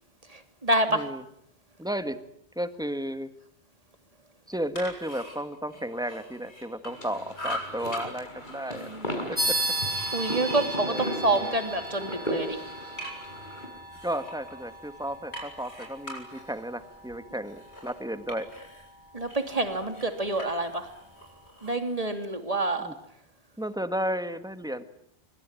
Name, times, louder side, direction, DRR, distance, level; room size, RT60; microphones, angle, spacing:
voice 1, 0.3-1.1 8.7-9.3 10.1-12.6 19.1-20.9 21.6-22.9, right 2 dB, 35° right, 7 dB, 3.2 m, -28 dB
voice 2, 0.9-1.2 1.8-2.2 2.6-3.3 4.5-8.9 9.3-9.6 10.8-11.5 14.0-18.5 22.8-22.9 23.6-24.8, equal, 5° right, 10 dB, 1.7 m, -33 dB
sound 1, 4.5-7.1 7.3-8.1 8.4-12.0 12.4-13.4 13.9-18.9 19.2-21.8, left 1 dB, 90° left, 7.4 m, -42 dB
sound 2, 6.9-13.7, equal, 50° left, 6.2 m, -36 dB
sound 3, 9.4-19.3, right 1 dB, 20° left, 7.6 m, -36 dB
26.5 x 24.5 x 9.0 m, 0.73 s
omnidirectional pair, 1.1 m